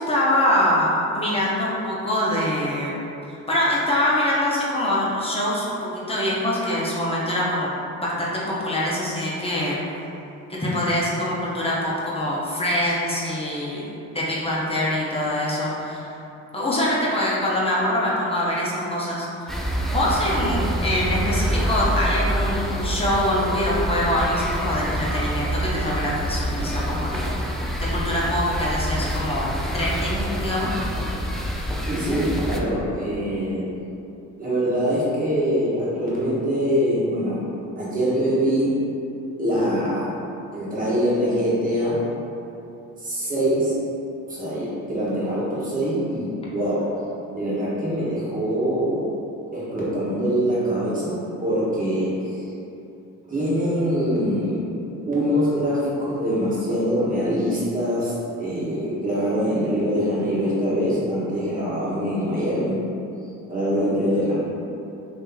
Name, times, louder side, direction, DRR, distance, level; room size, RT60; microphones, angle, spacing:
voice 1, 0.0-2.9 3.3-7.7 8.0-9.8 10.5-16.1 16.5-19.6 19.9-27.3 27.8-30.8, left 1 dB, 20° left, -6 dB, 0.9 m, -24 dB
sound 1, 19.5-32.6, equal, ahead, 0.3 m, -26 dB
voice 2, 31.9-33.7 34.4-37.4 37.8-38.8 39.4-40.2 40.5-42.0 43.0-43.7 44.3-46.9 47.3-49.1 49.5-52.4 53.3-54.7 55.1-62.9 63.5-64.4, equal, 25° right, -8 dB, 1.3 m, -24 dB
3.0 x 2.8 x 3.8 m, 2.8 s
cardioid pair, 90°, 30 cm